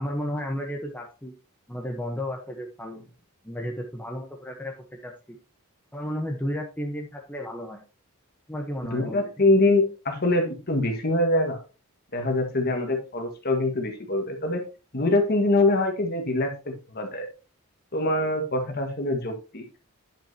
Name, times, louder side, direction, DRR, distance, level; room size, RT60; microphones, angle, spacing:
voice 1, 0.0-1.3 1.7-3.0 3.4-4.7 5.0-5.4 5.9-7.8 8.5-9.3, equal, 10° left, 1 dB, 1.0 m, -33 dB
voice 2, 8.8-11.6 12.1-14.6 14.9-17.3 17.9-19.6, left 2 dB, 45° left, 4 dB, 1.7 m, -24 dB
10.0 x 6.4 x 2.8 m, 0.31 s
head